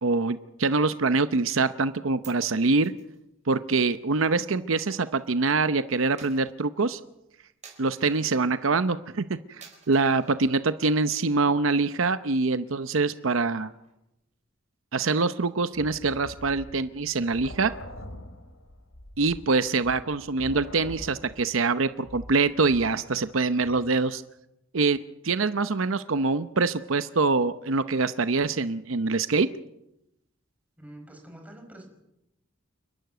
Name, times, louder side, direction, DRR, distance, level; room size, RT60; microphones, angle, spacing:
voice 1, 0.0-2.9 3.5-7.0 7.8-13.7 14.9-17.7 19.2-24.2 24.7-25.0 25.2-29.5, right 3 dB, 70° right, 12 dB, 0.8 m, -24 dB
Coin (dropping), 1.9-5.4 5.6-8.5 8.9-9.2 9.6-10.4 10.8-11.5 11.8-11.9 12.2-14.1, right 6 dB, 35° right, 4.7 m, -55 dB
sound 1, 15.7-23.2 23.6-23.8, left 1 dB, 75° left, 3.5 m, -44 dB
voice 2, 30.8-31.9, right 1 dB, 5° right, 3 dB, 5.3 m, -46 dB
29.5 x 12.0 x 9.2 m, 0.87 s
head